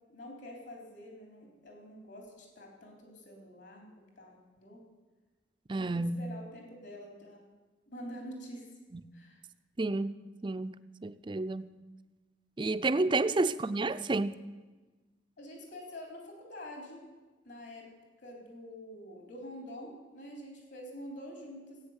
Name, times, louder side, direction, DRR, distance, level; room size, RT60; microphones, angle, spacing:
voice 1, 0.1-4.8 5.8-7.4 7.9-8.7 9.1-9.4 13.3-13.4 15.4-17.0 17.4-17.9 18.2-21.8, equal, 65° left, 3.5 m, -47 dB
voice 2, 5.7-6.2 8.9-9.0 9.8-10.1 10.4-10.8 11.0-11.7 12.6-14.4, right 2 dB, 25° right, 0.4 m, -30 dB
16.5 x 8.8 x 8.1 m
head